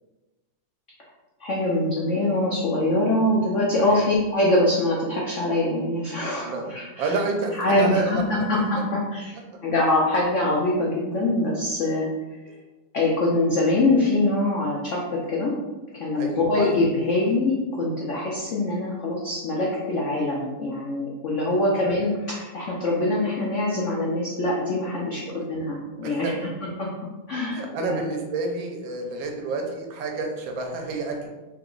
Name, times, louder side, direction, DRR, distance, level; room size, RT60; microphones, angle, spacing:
voice 1, 1.4-7.2 7.6-8.8 9.1-9.4 9.6-12.1 12.9-15.5 15.9-26.3 26.8-26.9 27.3-28.0, left 2 dB, 85° left, -4 dB, 0.6 m, -24 dB
voice 2, 6.4-8.2 16.2-16.7 21.5-21.6 26.0-26.5 27.5-31.3, right 3 dB, 80° right, 3 dB, 1.4 m, -29 dB
3.5 x 2.9 x 3.8 m, 1.1 s
omnidirectional pair, 2.1 m